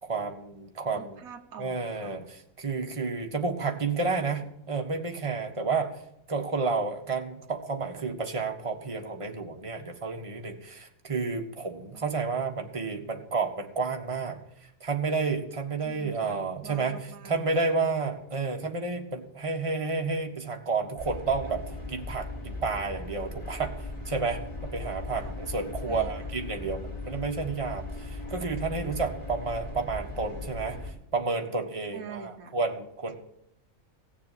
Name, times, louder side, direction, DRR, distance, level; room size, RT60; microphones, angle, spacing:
voice 1, 0.0-1.2 1.6-5.9 6.3-14.4 14.8-21.6 21.9-23.7 24.1-24.4 24.7-33.2, right 4 dB, 25° right, 3 dB, 1.5 m, -31 dB
voice 2, 0.9-2.3 11.9-12.1 15.8-17.5 17.8-18.0 25.1-25.4 25.9-26.3 31.9-32.6, right 7 dB, 85° right, 7 dB, 1.6 m, -46 dB
sound 1, 21.0-30.9, left 2 dB, 25° left, 3.9 m, -38 dB
17.0 x 7.1 x 8.4 m, 0.78 s
omnidirectional pair, 1.5 m